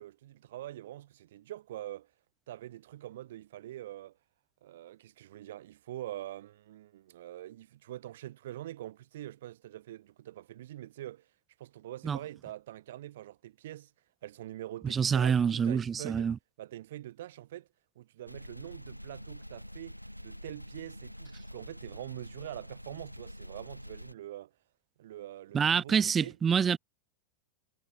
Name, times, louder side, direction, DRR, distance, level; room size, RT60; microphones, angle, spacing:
voice 1, 0.0-2.1 2.5-4.2 4.6-11.3 11.6-13.9 14.2-16.3 16.6-17.7 18.0-24.5 25.0-26.4, right 13 dB, 55° right, 2.6 m, -44 dB
voice 2, 14.9-16.4 25.5-26.8, right 7 dB, 20° right, 1.2 m, -26 dB
sound 1, 18.3-24.1, equal, 90° left, 1.0 m, -46 dB
figure-of-eight pair, 90°, 0 cm